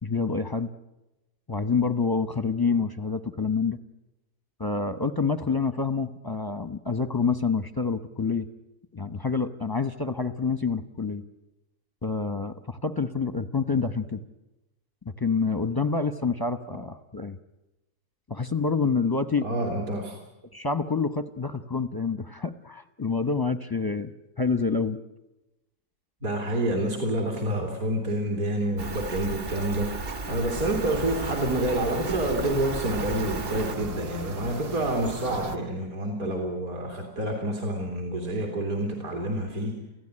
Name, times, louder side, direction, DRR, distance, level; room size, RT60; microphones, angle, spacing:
voice 1, 0.0-0.7 1.5-3.8 4.6-8.4 8.9-11.2 12.0-14.2 15.2-17.4 18.3-19.5 20.5-25.0, left 4 dB, 20° left, 11 dB, 0.7 m, -27 dB
voice 2, 19.4-20.2 26.2-39.8, right 1 dB, 60° right, 2 dB, 3.4 m, -28 dB
Rain, 28.8-33.8, right 3 dB, 40° right, 1.4 m, -34 dB
sound 1, 30.5-35.6, right 2 dB, 80° right, 2.3 m, -37 dB
29.0 x 16.0 x 9.9 m, 0.99 s
omnidirectional pair, 1.7 m